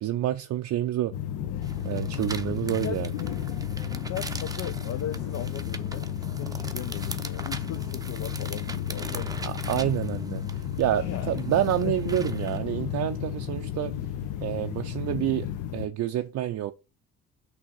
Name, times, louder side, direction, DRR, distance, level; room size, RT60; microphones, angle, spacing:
voice 1, 0.0-1.1 1.8-3.1 9.4-10.4 10.8-13.9 14.4-16.7, right 12 dB, 65° right, 0.5 m, -28 dB
sound 1, 1.1-15.9, left 10 dB, 85° left, 0.8 m, -33 dB
sound 2, 1.6-12.6, right 3 dB, 10° right, 0.6 m, -42 dB
voice 2, 2.4-3.0 3.9-6.1 6.4-9.5 11.0-11.4 11.8-12.1, left 10 dB, 55° left, 0.5 m, -38 dB
6.2 x 2.8 x 5.3 m
cardioid pair, 90°, 30 cm